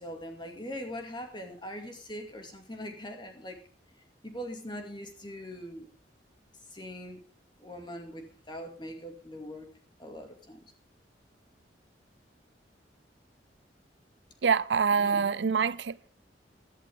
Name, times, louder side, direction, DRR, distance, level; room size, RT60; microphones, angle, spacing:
voice 1, 0.0-3.6 4.2-5.9 6.7-7.2 7.6-9.7 10.0-10.7 15.0-15.3, equal, 25° left, 2.5 m, -41 dB
voice 2, 14.4-16.0, right 6 dB, 75° right, 0.5 m, -25 dB
16.0 x 11.5 x 3.7 m
head